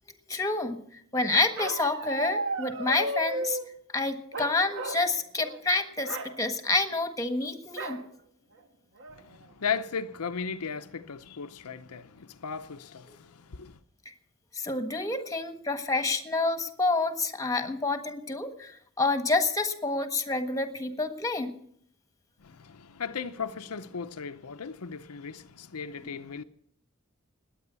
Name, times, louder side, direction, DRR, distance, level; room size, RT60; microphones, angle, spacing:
voice 1, 0.3-3.6 3.9-8.0 14.5-21.6, left 3 dB, 15° left, 1.4 m, -28 dB
Bark, 1.6-3.7 4.3-5.1 5.4-5.6 6.0-6.3 7.8-8.0 8.6-8.7 9.0-9.4, right 2 dB, 60° right, 1.6 m, -34 dB
voice 2, 9.1-13.8 22.4-26.4, left 6 dB, 80° left, 0.7 m, -36 dB
19.5 x 9.1 x 6.9 m
head